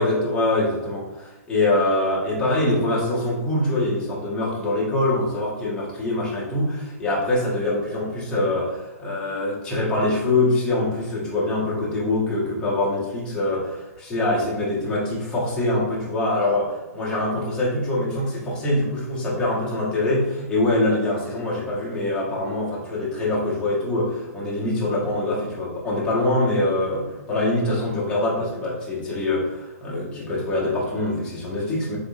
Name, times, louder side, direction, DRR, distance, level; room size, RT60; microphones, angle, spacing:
voice 1, 0.0-32.0, left 2 dB, 10° left, -7 dB, 1.0 m, -24 dB
3.6 x 3.6 x 2.4 m, 1.0 s
hypercardioid pair, 155°, 9 cm